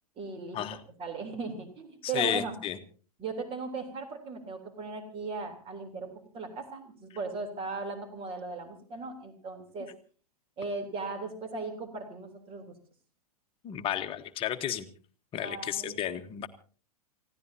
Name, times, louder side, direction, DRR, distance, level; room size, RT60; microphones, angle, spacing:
voice 1, 0.2-0.6 1.0-2.5 3.2-9.9 10.6-12.7 15.4-16.0, right 3 dB, 30° right, 5 dB, 3.5 m, -37 dB
voice 2, 2.0-2.8 13.6-14.9 15.3-16.5, left 10 dB, 30° left, 8 dB, 1.3 m, -32 dB
29.0 x 16.5 x 2.8 m, 0.40 s
figure-of-eight pair, 100°, 20 cm